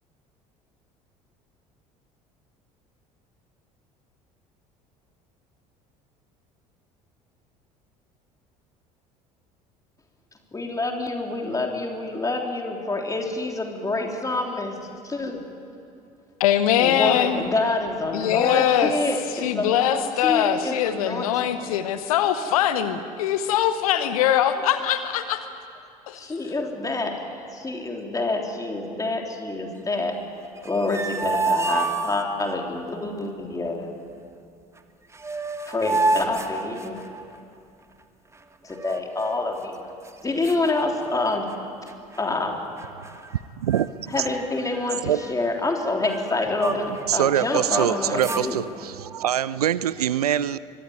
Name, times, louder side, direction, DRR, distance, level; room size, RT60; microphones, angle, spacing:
voice 1, 10.5-14.8 15.0-15.4 16.8-21.5 26.2-30.2 30.6-33.9 35.7-37.0 38.6-39.8 40.2-41.5 42.2-42.6 44.1-48.6, left 2 dB, 15° left, 2 dB, 3.6 m, -27 dB
voice 2, 16.4-17.4 18.1-18.9 19.4-25.4 26.1-26.2, left 10 dB, 65° left, 11 dB, 1.0 m, -22 dB
sound 1, 30.6-32.6 34.8-34.9 35.1-37.4 38.7-39.5 40.1-40.2 40.4-41.6 41.9-42.2 42.8-43.4 43.7-43.9 44.1-47.0 47.4-48.5, right 3 dB, 15° right, 1.5 m, -29 dB
voice 3, 43.6-44.3 45.0-45.2 47.1-50.6, right 10 dB, 75° right, 18 dB, 0.5 m, -24 dB
24.0 x 18.5 x 9.4 m, 2.6 s
figure-of-eight pair, 60°, 20 cm